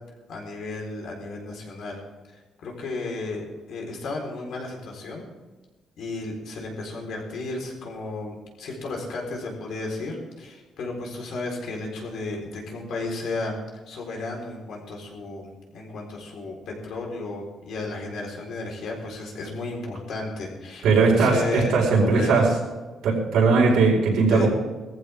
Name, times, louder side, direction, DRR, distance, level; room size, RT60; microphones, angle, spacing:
voice 1, 0.3-2.0 2.3-5.3 6.0-13.6 13.9-22.4 24.3-24.5, left 3 dB, 65° left, 0 dB, 4.1 m, -33 dB
voice 2, 20.8-22.5 23.0-24.5, right 4 dB, 85° right, -2 dB, 4.7 m, -19 dB
19.5 x 14.5 x 3.6 m, 1.2 s
cardioid pair, 160°, 0 cm